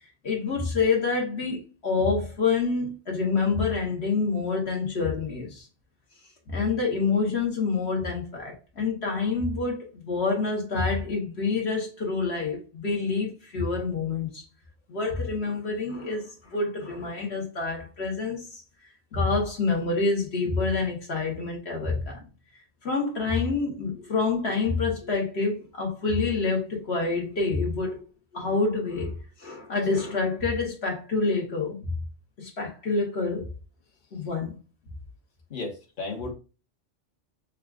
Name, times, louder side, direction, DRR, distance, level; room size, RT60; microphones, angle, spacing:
voice 1, 0.2-5.7 6.5-14.4 14.9-18.6 19.1-22.2 22.8-28.0 28.3-31.9 32.4-33.5 34.1-34.6, left 4 dB, 60° left, 1.4 m, -27 dB
voice 2, 35.5-36.3, left 3 dB, 45° left, 1.2 m, -34 dB
6.4 x 2.4 x 2.4 m
omnidirectional pair, 1.3 m